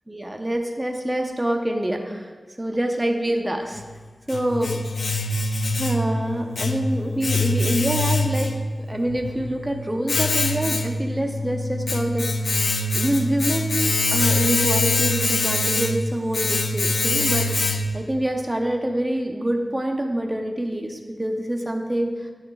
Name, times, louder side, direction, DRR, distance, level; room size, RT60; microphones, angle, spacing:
voice 1, 0.1-2.3 2.6-3.8 4.3-4.8 5.8-8.5 8.9-12.5 12.9-17.5 17.9-22.3, right 1 dB, 20° right, 3 dB, 0.8 m, -26 dB
Domestic sounds home sounds, 3.8-18.1, left 2 dB, 85° left, 0.4 m, -24 dB
10.0 x 7.9 x 2.4 m, 1.4 s
cardioid pair, 45°, 0 cm